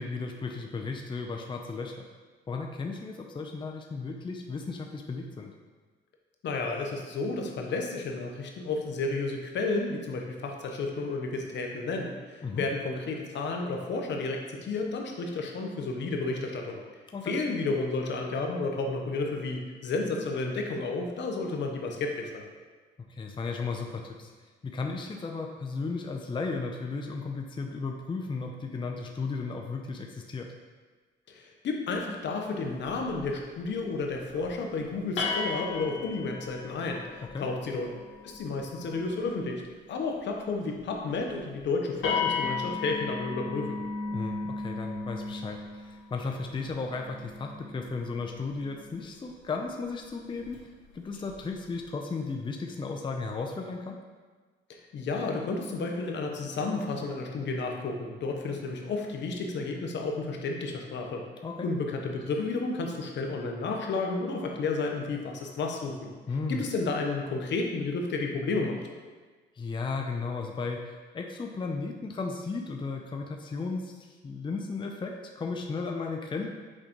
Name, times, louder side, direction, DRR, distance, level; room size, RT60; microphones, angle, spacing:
voice 1, 0.0-2.0 2.5-5.5 12.4-12.7 17.1-17.4 23.1-24.3 24.6-30.5 37.2-37.5 44.1-54.0 61.4-61.7 66.3-66.6 69.6-76.5, left 4 dB, 25° left, 2 dB, 0.5 m, -35 dB
voice 2, 6.4-16.8 17.2-22.5 31.3-37.9 38.2-39.6 39.9-43.8 54.7-61.2 61.6-66.1 66.5-68.8, left 3 dB, 65° left, 2 dB, 0.9 m, -32 dB
sound 1, 32.8-33.3 34.1-34.5 35.2-39.5 41.1-41.3 41.6-41.7 42.0-49.1 50.4-50.6 51.1-51.6, left 4 dB, 85° left, 1.7 m, -36 dB
6.4 x 4.9 x 3.0 m, 1.4 s
cardioid pair, 90°, 20 cm